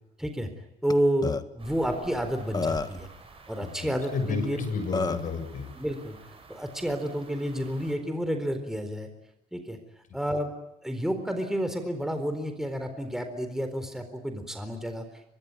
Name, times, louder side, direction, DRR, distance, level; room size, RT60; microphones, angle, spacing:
voice 1, 0.2-0.5 0.8-3.1 3.5-4.6 5.8-6.2 6.5-9.1 9.5-9.8 10.1-10.5 10.8-15.0, equal, 5° right, 7 dB, 4.1 m, -30 dB
Burping eructation, 0.9-1.0 1.2-1.4 2.2-2.3 2.5-3.1 4.4-4.5 4.9-5.3, left 4 dB, 25° left, 1.5 m, -29 dB
sound 1, 1.6-8.0, right 4 dB, 35° right, 7.7 m, -50 dB
voice 2, 3.6-5.7, left 4 dB, 50° left, 8 dB, 7.4 m, -32 dB
24.0 x 23.0 x 9.5 m, 0.87 s
cardioid pair, 110°, 17 cm